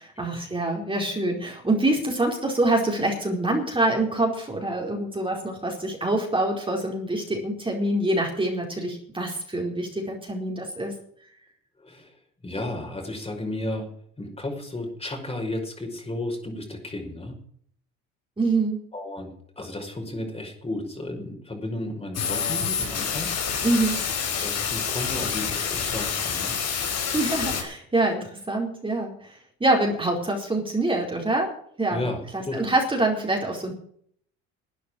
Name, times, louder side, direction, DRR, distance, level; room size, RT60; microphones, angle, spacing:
voice 1, 0.0-10.9 18.4-18.8 23.6-24.1 27.0-31.5 31.8-32.0 32.3-33.7, right 2 dB, 15° right, 1 dB, 4.6 m, -25 dB
voice 2, 11.8-12.1 12.4-13.9 14.2-17.4 18.9-23.3 24.4-26.5 31.9-32.6, left 1 dB, 20° left, 3 dB, 5.3 m, -33 dB
sound 1, 22.1-27.6, left 7 dB, 55° left, 4.8 m, -27 dB
12.5 x 9.2 x 8.7 m, 0.62 s
supercardioid pair, 80°, 31 cm